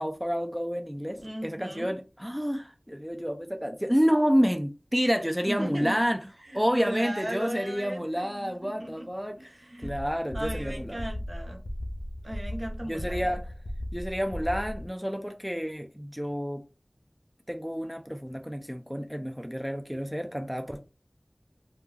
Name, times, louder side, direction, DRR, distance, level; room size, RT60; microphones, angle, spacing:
voice 1, 0.0-6.2 6.5-9.4 9.8-11.0 12.9-13.5 13.9-16.6 17.5-20.8, equal, 5° right, 0.3 m, -29 dB
voice 2, 1.2-1.9 5.5-6.0 6.4-9.1 9.4-9.9 10.3-11.6 12.2-13.3, right 1 dB, 60° right, 0.7 m, -36 dB
sound 1, 9.8-14.9, left 1 dB, 85° left, 0.3 m, -36 dB
2.3 x 2.2 x 3.2 m
wide cardioid pair, 45°, 0 cm